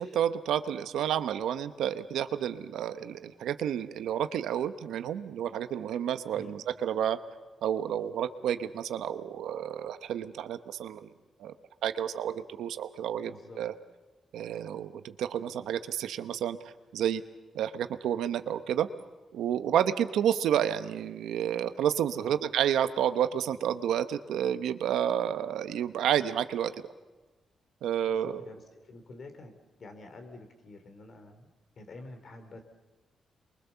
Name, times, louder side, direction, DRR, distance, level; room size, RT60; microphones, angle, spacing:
voice 1, 0.0-7.2 7.6-11.1 11.4-11.5 11.8-13.7 14.3-17.2 17.5-18.9 19.3-26.7 27.8-28.4, right 10 dB, 90° right, 10 dB, 0.9 m, -30 dB
voice 2, 13.2-13.6 22.1-22.4 28.0-29.5 29.8-31.5 31.8-32.6, left 2 dB, 55° left, 7 dB, 3.3 m, -48 dB
28.0 x 23.0 x 7.0 m, 1.2 s
cardioid pair, 75°, 0 cm